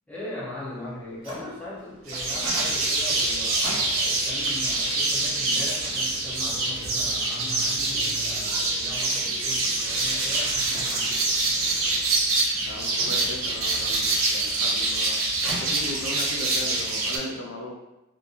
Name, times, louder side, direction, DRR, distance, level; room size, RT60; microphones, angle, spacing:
voice 1, 0.1-11.2, left 1 dB, 5° left, -9 dB, 0.9 m, -39 dB
Microwave oven, 0.9-16.3, right 1 dB, 30° right, 0.9 m, -44 dB
sound 1, 2.1-17.2, right 2 dB, 80° right, 0.6 m, -25 dB
voice 2, 12.7-17.7, left 1 dB, 70° left, 0 dB, 0.4 m, -37 dB
2.8 x 2.4 x 2.5 m, 0.93 s
head